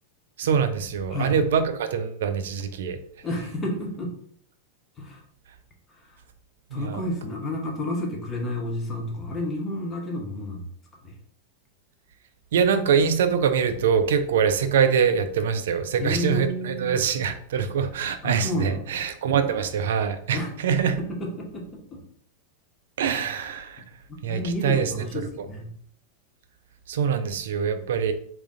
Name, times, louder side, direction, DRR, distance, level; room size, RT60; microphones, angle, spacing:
voice 1, 0.4-3.0 6.7-7.0 12.5-20.4 20.6-21.0 23.0-23.8 24.2-24.9 26.9-28.1, right 7 dB, 60° right, 9 dB, 0.4 m, -24 dB
voice 2, 3.2-4.1 5.0-5.2 5.9-6.2 6.7-10.7 11.0-11.2 16.0-16.9 18.2-18.8 20.3-20.5 21.0-21.6 21.9-22.0 24.3-25.7, left 1 dB, 20° left, 0 dB, 0.9 m, -30 dB
3.6 x 2.6 x 3.7 m, 0.62 s
figure-of-eight pair, 90°, 0 cm